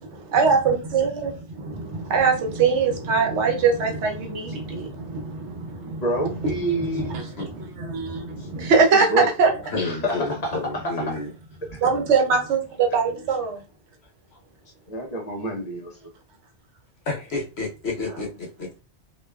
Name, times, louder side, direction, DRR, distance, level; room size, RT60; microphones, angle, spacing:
voice 1, 0.0-6.0 6.4-9.5 11.8-13.6, right 5 dB, 85° right, 1.0 m, -22 dB
voice 2, 5.8-7.2 8.9-9.3 9.7-10.6 10.8-11.1 11.6-11.8 14.9-15.9, right 1 dB, 40° left, 0.8 m, -28 dB
voice 3, 9.7-11.3 17.1-18.8, left 3 dB, 70° left, 1.1 m, -30 dB
2.8 x 2.3 x 2.2 m
omnidirectional pair, 1.1 m